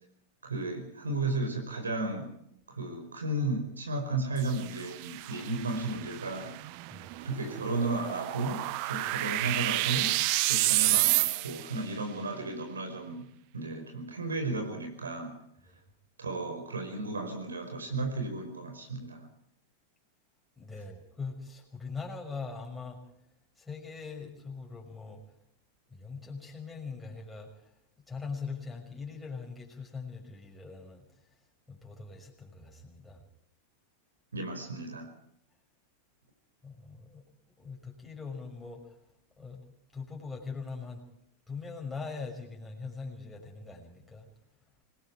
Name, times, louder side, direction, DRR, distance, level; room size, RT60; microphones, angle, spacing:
voice 1, 0.4-2.3 2.7-6.6 7.2-10.1 10.5-13.3 13.5-15.4 16.2-19.3 34.3-35.1, right 2 dB, 75° right, 4 dB, 5.2 m, -34 dB
sound 1, 4.4-11.8, right 20 dB, 45° right, 0.8 m, -30 dB
voice 2, 6.9-7.3 15.7-15.8 20.6-23.0 23.6-25.2 25.9-27.7 28.1-31.1 31.7-33.2 36.6-37.2 37.6-39.0 39.4-39.6 39.9-41.0 41.5-44.3, left 4 dB, 5° left, -1 dB, 6.1 m, -41 dB
26.5 x 20.5 x 4.8 m, 0.75 s
figure-of-eight pair, 90°, 0 cm